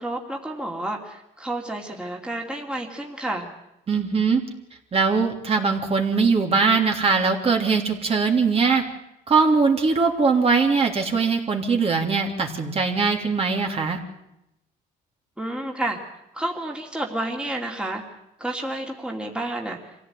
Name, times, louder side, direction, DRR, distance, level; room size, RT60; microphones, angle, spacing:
voice 1, 0.0-3.5 15.4-16.0 16.3-18.0 18.4-19.9, right 1 dB, 5° right, 0 dB, 2.9 m, -30 dB
voice 2, 3.9-4.4 4.9-8.8 9.3-14.0, right 4 dB, 35° right, 2 dB, 3.2 m, -21 dB
25.5 x 16.0 x 9.4 m, 0.86 s
cardioid pair, 110°, 17 cm